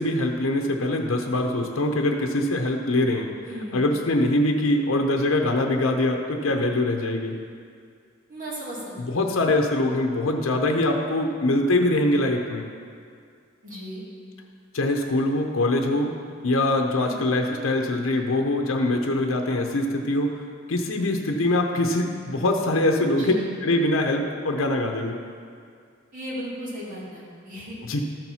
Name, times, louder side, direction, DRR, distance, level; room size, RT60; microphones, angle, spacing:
voice 1, 0.0-3.3 3.7-7.4 9.0-12.7 14.7-16.1 16.4-20.3 20.7-23.3 23.6-25.2 27.8-28.0, left 1 dB, 85° left, 3 dB, 0.7 m, -23 dB
voice 2, 3.4-3.8 8.3-9.2 13.6-14.0 17.0-17.2 23.2-23.5 26.1-27.8, equal, 40° right, -7 dB, 2.6 m, -35 dB
13.0 x 4.5 x 5.6 m, 2.2 s
head